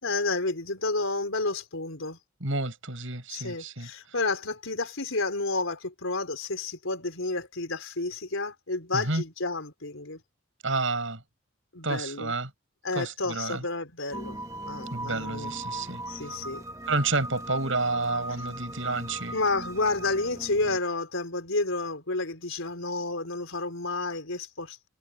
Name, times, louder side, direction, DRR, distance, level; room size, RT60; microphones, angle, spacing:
voice 1, 0.0-2.2 3.3-10.2 11.7-12.3 12.8-14.4 14.6-15.5 16.1-16.6 19.3-24.9, left 3 dB, 85° left, 4.6 m, -30 dB
voice 2, 2.4-3.9 8.9-9.2 10.6-11.2 11.8-12.5 12.9-13.6 14.9-16.0 16.9-19.4, right 3 dB, 75° right, 6.5 m, -30 dB
sound 1, 14.1-20.8, right 1 dB, 15° right, 1.5 m, -38 dB
head